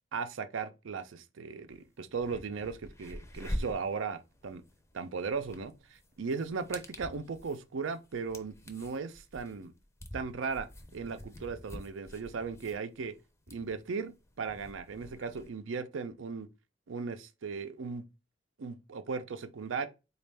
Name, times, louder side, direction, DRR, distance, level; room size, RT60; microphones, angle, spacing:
voice 1, 0.1-4.6 4.9-5.7 6.2-9.7 10.1-13.1 13.5-16.5 16.9-18.0 18.6-19.9, right 5 dB, 85° right, 0.5 m, -37 dB
sound 1, 1.7-1.8 2.1-15.5, equal, 15° left, 0.5 m, -45 dB
4.1 x 2.3 x 3.3 m
head